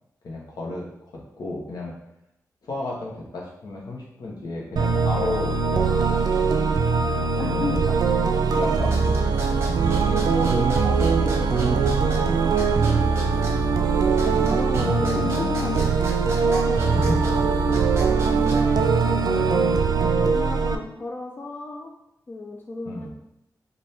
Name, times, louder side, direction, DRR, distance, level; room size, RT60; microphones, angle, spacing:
voice 1, 0.2-0.8 1.4-1.9 2.6-6.4 7.3-7.9 8.4-9.2 9.5-9.7 14.2-15.4 16.9-17.2 22.8-23.1, left 2 dB, 75° left, -3 dB, 1.0 m, -33 dB
sound 1, 4.8-20.8, right 5 dB, 80° right, 0.4 m, -21 dB
voice 2, 7.4-7.8 10.0-13.1 14.4-15.9 16.4-17.4 18.1-19.4 20.2-21.9 22.3-23.1, left 2 dB, 30° left, 1 dB, 0.4 m, -33 dB
sound 2, 8.8-18.8, right 2 dB, 40° right, 0.8 m, -36 dB
3.3 x 2.6 x 4.2 m, 0.82 s
wide cardioid pair, 135°, 7 cm